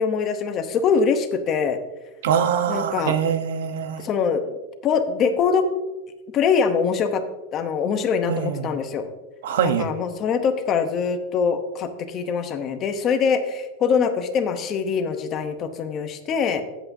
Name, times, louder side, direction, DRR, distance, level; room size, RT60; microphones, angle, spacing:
voice 1, 0.0-1.8 2.7-3.1 4.0-4.6 4.8-5.6 6.3-7.2 7.5-9.1 9.6-16.6, left 6 dB, 25° left, 8 dB, 0.7 m, -23 dB
voice 2, 2.2-4.0 8.3-8.7 9.4-9.9, right 8 dB, 70° right, 10 dB, 0.8 m, -23 dB
15.0 x 8.0 x 2.6 m, 1.1 s
supercardioid pair, 170°, 0 cm